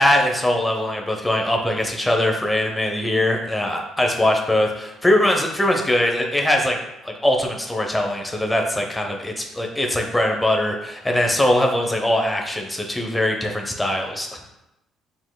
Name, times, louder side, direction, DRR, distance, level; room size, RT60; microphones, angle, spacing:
voice 1, 0.0-6.8 7.0-14.3, left 1 dB, 10° left, 1 dB, 0.8 m, -21 dB
5.1 x 3.7 x 2.2 m, 0.88 s
supercardioid pair, 70°, 0 cm